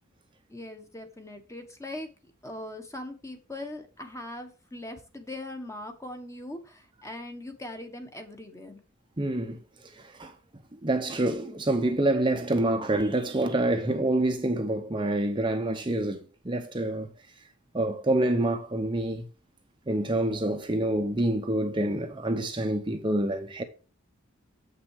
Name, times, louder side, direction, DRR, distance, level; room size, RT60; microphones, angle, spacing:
voice 1, 0.5-2.1 2.4-8.8, left 1 dB, 15° left, 1.2 m, -40 dB
voice 2, 9.2-9.6 10.0-10.3 10.8-17.1 17.7-19.3 19.9-23.6, right 1 dB, 20° right, 0.8 m, -27 dB
7.6 x 6.0 x 4.7 m
head